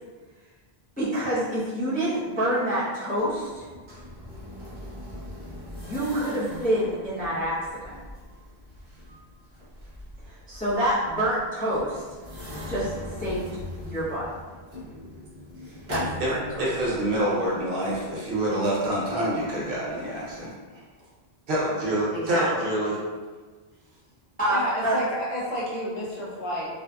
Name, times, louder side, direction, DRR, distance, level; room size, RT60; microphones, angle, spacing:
voice 1, 1.0-3.7 5.8-7.9 10.3-12.0 12.7-13.5 13.8-14.3 15.9-16.6 22.1-22.5 24.4-25.0, right 1 dB, 10° left, -11 dB, 0.4 m, -27 dB
sound 1, 3.2-20.5, left 1 dB, 35° right, 0.6 m, -41 dB
voice 2, 16.6-20.5 21.5-23.0, right 1 dB, 65° right, -5 dB, 0.8 m, -26 dB
voice 3, 24.5-26.7, equal, 50° left, -8 dB, 0.7 m, -30 dB
2.5 x 2.4 x 2.2 m, 1.4 s
omnidirectional pair, 1.1 m